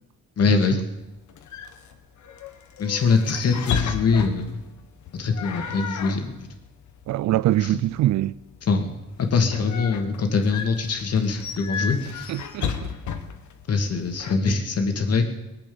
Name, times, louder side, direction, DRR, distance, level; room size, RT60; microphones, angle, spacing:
voice 1, 0.4-0.8 2.8-4.6 5.1-6.5 7.6-7.8 8.7-8.9 9.2-12.3 13.7-15.3, left 4 dB, 55° left, 2.4 m, -23 dB
sound 1, 1.0-14.3, left 7 dB, 70° left, 1.6 m, -35 dB
voice 2, 7.1-8.3 12.3-12.9, right 14 dB, 65° right, 0.5 m, -23 dB
19.5 x 8.6 x 7.1 m
cardioid pair, 90°, 30 cm